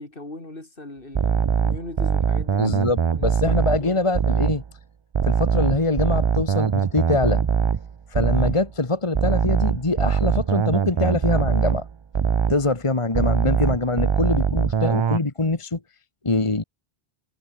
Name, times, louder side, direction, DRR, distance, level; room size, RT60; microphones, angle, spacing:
voice 1, 0.0-4.0, left 2 dB, 60° left, 4.1 m, -39 dB
sound 1, 1.1-4.7 5.1-8.7 9.1-12.7 13.1-15.2, right 6 dB, 40° right, 0.4 m, -22 dB
voice 2, 2.6-4.6 5.2-7.4 8.1-11.8 12.5-15.8 16.2-16.6, left 2 dB, 30° left, 1.5 m, -24 dB
omnidirectional pair, 1.0 m